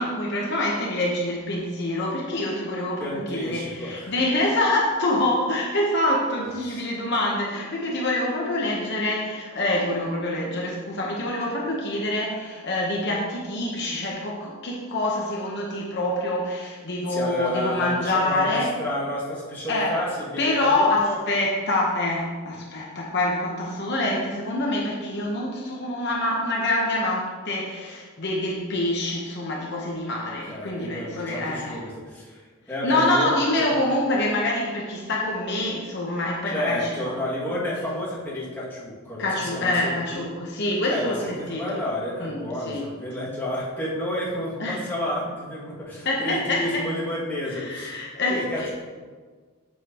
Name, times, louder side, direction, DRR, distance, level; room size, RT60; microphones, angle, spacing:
voice 1, 0.0-18.7 19.7-20.0 20.4-31.8 32.8-37.1 39.2-41.8 42.2-42.9 44.6-44.8 46.0-46.9 47.5-48.7, left 1 dB, 50° left, -3 dB, 1.0 m, -26 dB
voice 2, 3.0-4.1 6.6-6.8 17.1-21.2 30.1-33.3 33.6-33.7 36.5-40.3 40.9-48.0 48.3-48.7, left 1 dB, 10° left, -8 dB, 2.0 m, -31 dB
7.9 x 7.5 x 2.9 m, 1.5 s
head